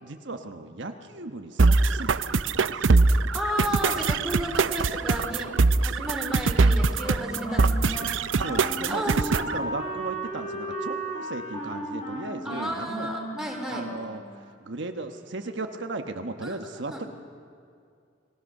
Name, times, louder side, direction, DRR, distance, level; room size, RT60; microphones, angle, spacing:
voice 1, 0.0-2.9 8.3-13.1 13.7-14.2 14.6-17.1, right 2 dB, 70° right, 5 dB, 1.2 m, -36 dB
sound 1, 1.6-9.6, right 3 dB, 90° right, 0.6 m, -23 dB
voice 2, 3.3-5.5 5.8-8.0 8.9-9.4 12.4-13.9 16.4-17.0, equal, 5° right, 0 dB, 3.6 m, -33 dB
Wind instrument woodwind instrument, 6.9-14.3, right 1 dB, 40° left, 4.2 m, -35 dB
30.0 x 20.0 x 6.5 m, 2.3 s
head